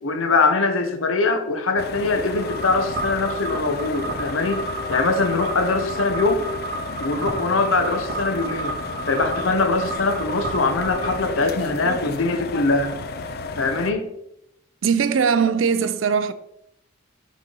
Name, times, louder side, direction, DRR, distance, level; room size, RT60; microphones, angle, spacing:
voice 1, 0.0-6.4 7.0-8.8 9.1-13.0 13.6-14.1, left 3 dB, 85° left, 0.8 m, -22 dB
sound 1, 1.8-13.9, left 3 dB, 50° left, 0.4 m, -33 dB
sound 2, 2.3-11.2, right 2 dB, 50° right, 1.4 m, -32 dB
voice 2, 14.8-16.3, right 6 dB, 75° right, 0.4 m, -20 dB
6.3 x 4.2 x 3.8 m
head